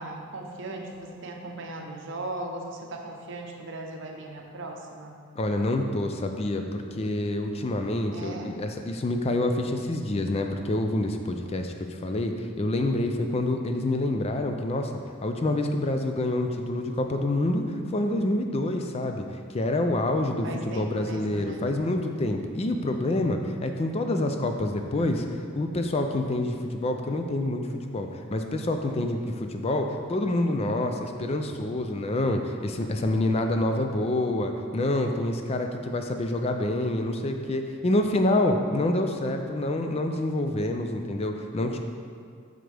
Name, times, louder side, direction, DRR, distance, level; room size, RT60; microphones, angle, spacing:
voice 1, 0.0-5.2 8.1-8.6 20.4-21.6, right 2 dB, 60° right, 2 dB, 0.7 m, -38 dB
voice 2, 5.4-14.9 15.2-19.2 19.5-25.3 25.5-41.8, left 1 dB, 30° left, 5 dB, 0.4 m, -27 dB
7.7 x 5.1 x 3.4 m, 2.1 s
head